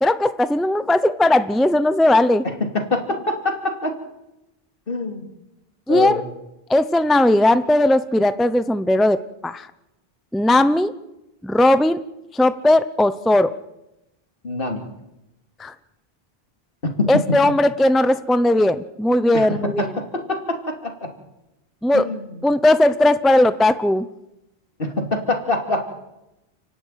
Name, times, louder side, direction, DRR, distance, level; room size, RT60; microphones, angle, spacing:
voice 1, 0.0-2.4 5.9-6.2 6.7-9.2 9.4-9.7 10.3-10.9 11.4-12.0 12.3-13.5 15.6-15.7 17.1-19.9 21.8-22.1 22.4-24.1, left 1 dB, ahead, 12 dB, 0.6 m, -17 dB
voice 2, 2.4-3.9 4.9-5.3 5.9-6.2 14.4-14.8 16.8-17.1 19.3-21.1 21.9-22.3 24.8-25.9, left 2 dB, 60° left, 4 dB, 3.0 m, -25 dB
30.0 x 11.0 x 9.2 m, 0.93 s
omnidirectional pair, 1.0 m